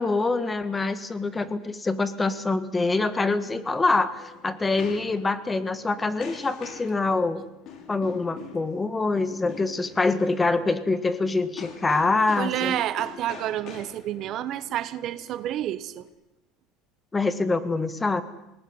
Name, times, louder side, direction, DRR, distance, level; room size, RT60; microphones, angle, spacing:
voice 1, 0.0-7.5 7.9-12.8 17.1-18.2, left 3 dB, 15° left, 13 dB, 1.7 m, -25 dB
sound 1, 3.6-16.1, left 6 dB, 55° left, 5.0 m, -45 dB
voice 2, 12.4-16.1, right 12 dB, 55° right, 15 dB, 1.1 m, -29 dB
20.5 x 19.0 x 9.8 m, 0.91 s
supercardioid pair, 105°, 0 cm